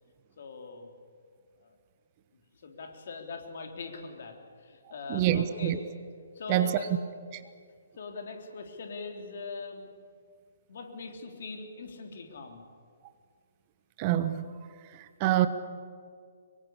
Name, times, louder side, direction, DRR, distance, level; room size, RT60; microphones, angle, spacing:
voice 1, 0.4-0.9 1.6-1.7 2.3-5.8 6.3-6.9 8.0-9.9 10.7-12.6, left 4 dB, 50° left, 4 dB, 3.7 m, -41 dB
voice 2, 5.1-5.8 6.5-6.8 14.0-14.5 15.2-15.5, right 13 dB, 30° right, 12 dB, 1.2 m, -25 dB
24.5 x 23.0 x 8.6 m, 2.1 s
figure-of-eight pair, 130°, 0 cm